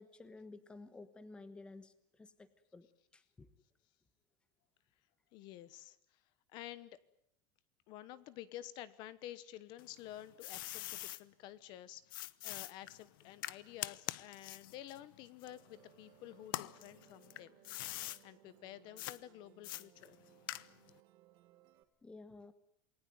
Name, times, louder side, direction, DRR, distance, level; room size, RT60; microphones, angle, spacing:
voice 1, 0.0-2.9 3.1-3.5 22.0-22.5, left 3 dB, 10° left, 13 dB, 1.2 m, -53 dB
voice 2, 5.3-6.2 6.5-7.0 7.9-17.6 18.2-20.2, left 13 dB, 45° left, 17 dB, 1.1 m, -51 dB
sound 1, 9.8-11.2 12.1-16.0 16.4-18.2 19.0-19.2 19.6-21.0, left 17 dB, 85° left, 1.0 m, -44 dB
Musical instrument, 15.4-21.8, right 15 dB, 45° right, 2.0 m, -65 dB
28.5 x 19.5 x 9.3 m, 0.72 s
cardioid pair, 170°, 11 cm